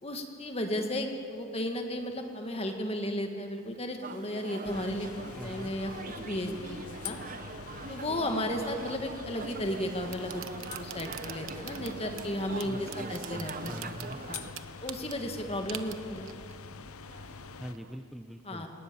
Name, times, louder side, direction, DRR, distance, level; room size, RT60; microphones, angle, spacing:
voice 1, 0.0-7.2 7.9-10.4 10.7-13.8 14.3-14.4 14.8-16.3 18.5-18.7, left 1 dB, 30° left, 4 dB, 2.1 m, -34 dB
sound 1, 4.0-14.5, right 4 dB, 40° right, 0.9 m, -43 dB
sound 2, 4.6-17.7, left 6 dB, 85° left, 0.7 m, -45 dB
voice 2, 5.3-5.7 12.6-14.2 17.6-18.7, equal, ahead, 5 dB, 0.7 m, -43 dB
sound 3, 9.4-18.0, right 9 dB, 65° right, 1.1 m, -47 dB
28.5 x 18.5 x 7.1 m, 2.6 s
head